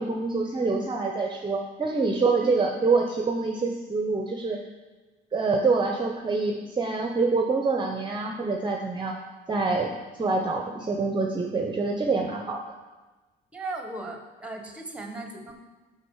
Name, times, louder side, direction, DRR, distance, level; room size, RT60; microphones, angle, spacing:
voice 1, 0.0-4.6 5.3-9.2 9.5-9.9 10.2-12.6, right 3 dB, 25° right, 2 dB, 0.6 m, -26 dB
voice 2, 13.5-15.5, right 2 dB, 5° right, 4 dB, 1.0 m, -37 dB
6.2 x 4.9 x 4.7 m, 1.2 s
cardioid pair, 90°, 20 cm